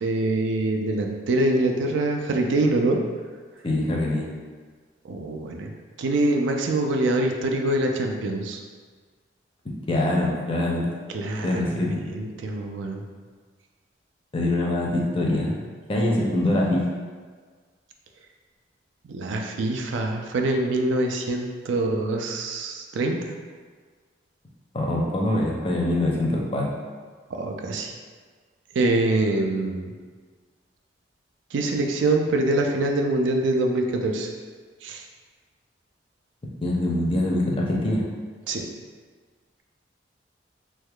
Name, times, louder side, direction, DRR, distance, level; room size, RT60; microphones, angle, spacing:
voice 1, 0.0-3.0 5.0-5.7 6.0-8.6 11.1-13.0 19.1-23.3 27.3-27.9 28.7-29.9 31.5-34.3 34.8-35.0 38.5-38.7, right 2 dB, 85° right, 2 dB, 0.4 m, -24 dB
voice 2, 3.6-4.3 9.9-10.9 11.4-12.0 14.3-15.6 15.9-16.9 24.7-26.7 36.6-38.0, left 1 dB, 30° left, -2 dB, 0.5 m, -24 dB
3.4 x 3.1 x 2.3 m, 1.5 s
head